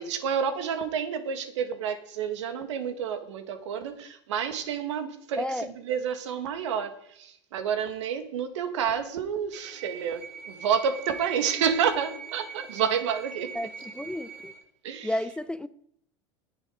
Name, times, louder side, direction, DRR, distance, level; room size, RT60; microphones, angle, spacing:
voice 1, 0.0-13.6 14.8-15.1, right 7 dB, 80° right, 1.9 m, -29 dB
voice 2, 5.4-5.7 13.5-14.5 15.0-15.7, left 1 dB, 5° left, 0.6 m, -32 dB
sound 1, 9.5-14.6, right 7 dB, 50° right, 7.0 m, -42 dB
19.0 x 7.4 x 5.1 m
hypercardioid pair, 85°, 15 cm